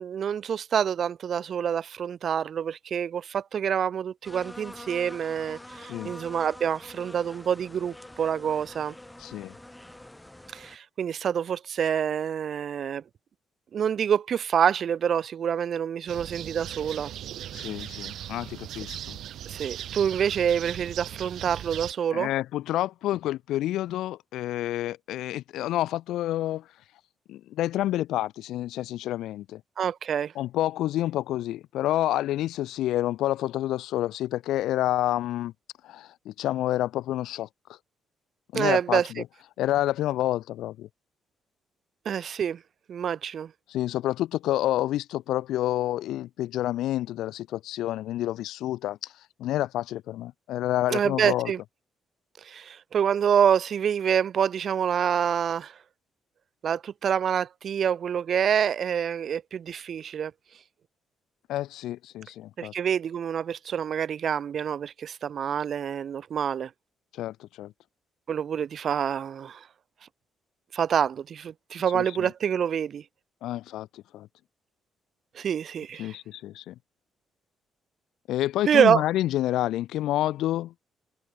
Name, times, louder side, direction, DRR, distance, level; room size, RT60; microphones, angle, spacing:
voice 1, 0.0-8.9 10.5-13.0 13.7-17.1 19.5-22.3 29.8-30.3 38.5-39.1 42.1-42.6 42.9-43.5 50.9-51.6 52.4-55.7 56.6-60.3 62.6-66.7 68.3-69.6 70.7-73.0 75.4-76.2 78.7-79.0, right 8 dB, 50° right, 2.0 m, -26 dB
sound 1, 4.2-10.8, left 1 dB, 5° left, 7.9 m, -45 dB
voice 2, 9.2-9.5 17.5-19.2 22.1-26.7 27.3-29.6 30.3-35.5 35.8-37.8 38.5-39.2 39.6-40.9 43.7-49.1 49.4-51.5 61.5-62.7 67.1-67.7 71.9-72.3 73.4-74.3 76.0-76.7 78.3-80.7, left 14 dB, 85° left, 1.2 m, -29 dB
sound 2, 16.1-21.9, right 11 dB, 70° right, 1.2 m, -38 dB
cardioid pair, 125°, 0 cm